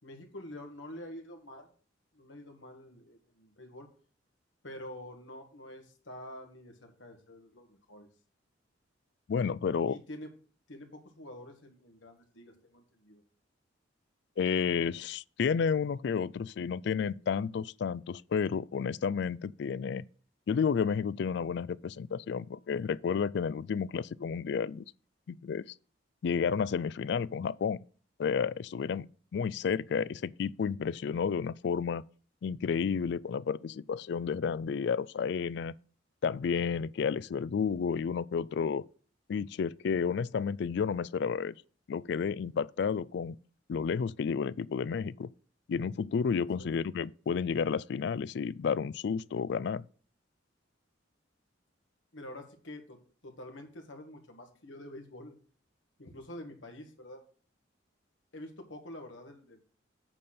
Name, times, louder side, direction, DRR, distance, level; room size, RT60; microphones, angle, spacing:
voice 1, 0.0-1.7 2.1-3.9 4.6-8.1 9.9-10.3 10.7-13.2 46.6-46.8 52.1-55.4 56.0-57.2 58.3-59.6, left 1 dB, 90° left, 2.0 m, -47 dB
voice 2, 9.3-10.0 14.4-20.0 20.5-24.8 25.3-25.6 26.2-27.8 28.2-29.1 29.3-32.0 32.4-35.8 36.2-38.8 39.3-41.5 41.9-43.4 43.7-45.3 45.7-49.8, left 6 dB, 65° left, 0.3 m, -31 dB
8.8 x 4.3 x 6.6 m
head